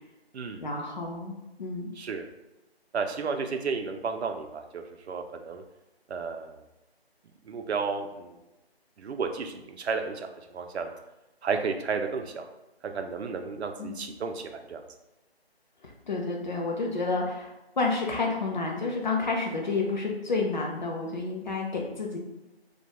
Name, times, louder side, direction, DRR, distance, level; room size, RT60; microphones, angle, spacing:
voice 1, 0.6-1.9 13.8-14.0 15.8-22.2, left 3 dB, 45° left, -1 dB, 0.5 m, -30 dB
voice 2, 2.0-2.3 2.9-5.6 6.1-6.6 7.5-8.4 9.0-11.0 11.4-12.4 12.9-14.8, right 5 dB, 90° right, 5 dB, 0.5 m, -32 dB
2.2 x 2.1 x 2.8 m, 0.99 s
figure-of-eight pair, 160°, 32 cm